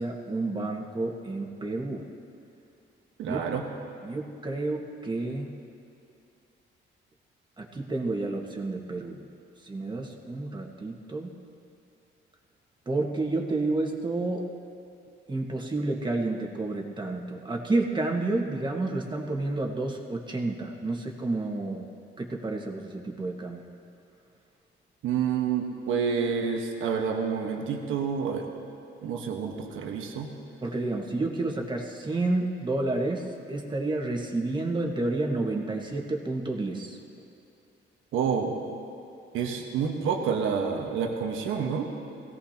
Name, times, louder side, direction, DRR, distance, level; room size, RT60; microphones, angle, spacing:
voice 1, 0.0-2.1 3.2-3.4 4.0-5.5 7.6-9.2 9.6-11.3 12.8-14.5 15.3-21.8 22.2-23.6 30.6-37.0, right 2 dB, 25° right, 1 dB, 1.7 m, -30 dB
voice 2, 3.2-3.6 25.0-28.5 29.0-30.3 38.1-38.5 39.3-41.9, right 6 dB, 85° right, 2 dB, 1.4 m, -28 dB
21.0 x 16.5 x 3.0 m, 2.7 s
cardioid pair, 90°, 20 cm